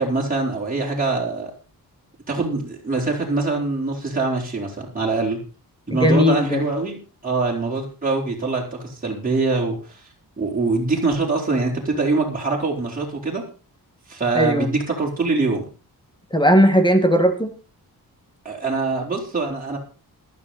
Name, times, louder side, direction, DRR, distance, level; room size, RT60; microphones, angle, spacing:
voice 1, 0.0-1.5 2.3-5.4 5.9-10.0 10.4-13.4 14.1-15.6 18.4-19.8, right 3 dB, 20° right, -3 dB, 4.3 m, -23 dB
voice 2, 5.9-6.6 14.3-14.7 16.3-17.5, equal, 10° left, 7 dB, 1.9 m, -17 dB
15.0 x 12.5 x 4.2 m, 0.34 s
wide cardioid pair, 150°, 38 cm